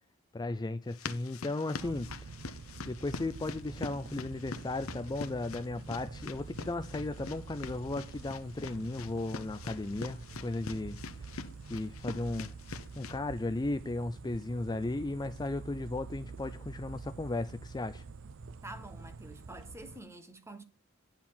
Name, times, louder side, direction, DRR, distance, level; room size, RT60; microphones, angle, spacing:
voice 1, 0.3-2.3 2.8-11.4 11.7-12.5 13.0-18.0, left 2 dB, 20° left, 0.4 m, -36 dB
sound 1, 0.9-13.2, left 4 dB, 80° left, 0.8 m, -44 dB
voice 2, 1.7-2.2 18.6-20.6, right 2 dB, 15° right, 1.1 m, -48 dB
sound 2, 1.8-20.0, right 4 dB, 65° right, 0.6 m, -47 dB
10.5 x 4.4 x 7.3 m
head